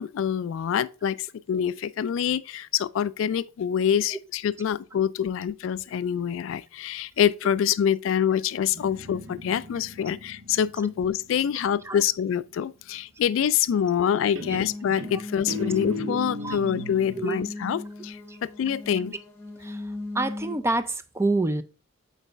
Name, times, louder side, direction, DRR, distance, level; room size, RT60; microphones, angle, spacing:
voice 1, 0.0-19.1, left 8 dB, 65° left, 0.3 m, -26 dB
Guitar, 8.7-12.2 13.7-14.1 14.4-17.3, left 2 dB, 75° right, 1.0 m, -38 dB
sound 1, 14.6-20.6, left 2 dB, 10° left, 1.2 m, -37 dB
voice 2, 16.1-16.6 17.2-17.4 18.3-18.4 18.9-19.0 19.6-19.9 20.1-21.6, right 2 dB, 15° right, 0.4 m, -28 dB
8.3 x 4.0 x 3.3 m
head